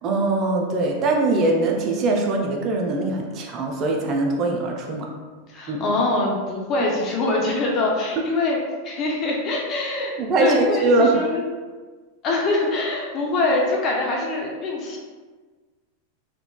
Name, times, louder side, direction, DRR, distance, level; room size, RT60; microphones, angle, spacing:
voice 1, 0.0-5.1 5.7-5.8 10.2-11.2, right 2 dB, 40° right, 1 dB, 0.5 m, -22 dB
voice 2, 5.5-8.6 8.8-10.1 10.4-10.9 11.1-11.5 12.2-15.0, left 2 dB, 40° left, -2 dB, 0.6 m, -24 dB
3.6 x 2.4 x 2.3 m, 1.4 s
hypercardioid pair, 105°, 0 cm